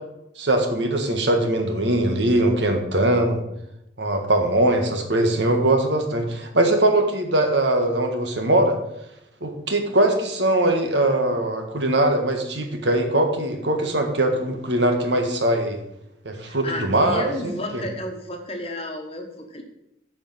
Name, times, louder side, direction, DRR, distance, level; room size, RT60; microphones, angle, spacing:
voice 1, 0.4-3.4 4.0-8.8 9.4-15.8 16.2-17.8, right 1 dB, 75° right, 4 dB, 1.6 m, -21 dB
voice 2, 16.4-19.6, left 1 dB, 30° left, 4 dB, 1.3 m, -32 dB
9.3 x 5.1 x 6.3 m, 0.85 s
head